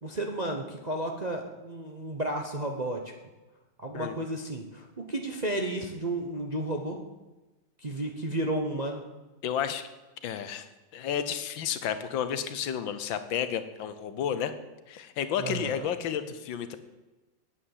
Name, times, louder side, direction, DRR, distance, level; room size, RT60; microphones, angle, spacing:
voice 1, 0.0-3.0 3.8-7.0 7.8-9.0 15.4-15.9, right 1 dB, 35° right, 2 dB, 0.7 m, -32 dB
voice 2, 9.4-9.9 10.2-10.7 10.9-14.5 14.9-16.8, left 8 dB, 80° left, 11 dB, 1.6 m, -31 dB
9.8 x 8.5 x 7.3 m, 1.1 s
omnidirectional pair, 2.1 m